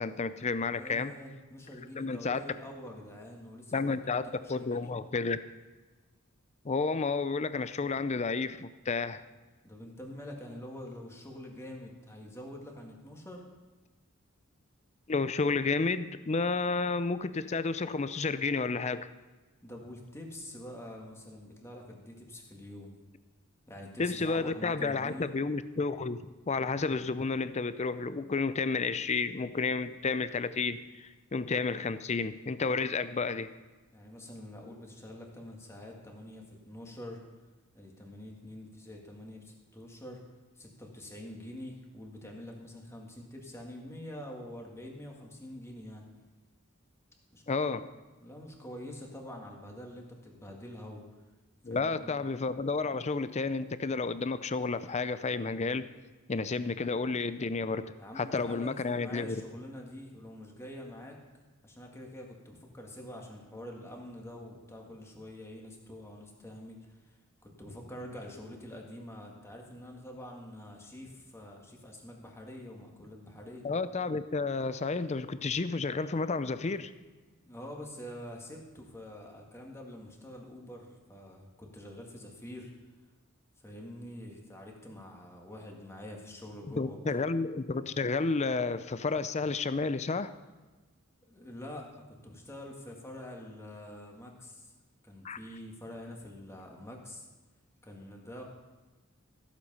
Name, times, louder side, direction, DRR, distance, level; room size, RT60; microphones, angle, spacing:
voice 1, 0.0-1.1 2.0-2.4 3.7-4.2 4.5-5.4 6.6-9.2 15.1-19.1 24.0-33.5 47.5-47.9 51.6-55.9 56.3-57.9 58.2-59.4 73.6-76.9 86.6-90.3 95.2-95.4, left 4 dB, 35° left, 13 dB, 0.5 m, -31 dB
voice 2, 0.6-4.9 9.6-13.4 19.6-22.9 23.7-25.3 33.9-37.2 37.7-40.2 40.6-46.0 47.3-47.4 48.2-51.0 51.7-52.2 58.0-61.2 61.6-67.1 67.4-73.6 77.4-82.7 83.6-87.3 91.3-94.7 95.0-97.3 97.8-98.4, left 1 dB, 15° left, 0 dB, 2.0 m, -46 dB
14.5 x 8.3 x 5.5 m, 1.2 s
head